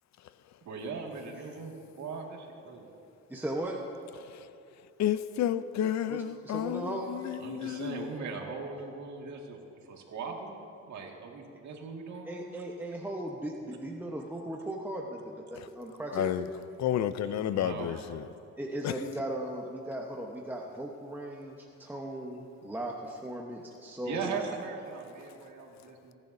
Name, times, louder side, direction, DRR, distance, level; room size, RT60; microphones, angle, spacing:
voice 1, 0.6-1.7 2.0-2.8 7.4-12.6 17.2-18.2 24.0-26.1, right 4 dB, 70° right, 1 dB, 2.0 m, -40 dB
voice 2, 3.3-3.8 6.1-7.2 12.2-16.4 18.6-24.4, right 1 dB, 5° right, -1 dB, 1.0 m, -37 dB
voice 3, 5.0-8.1 16.1-16.4 16.8-18.2 18.8-18.9, left 11 dB, 65° left, 14 dB, 0.5 m, -31 dB
29.0 x 10.5 x 2.7 m, 2.7 s
cardioid pair, 90°, 30 cm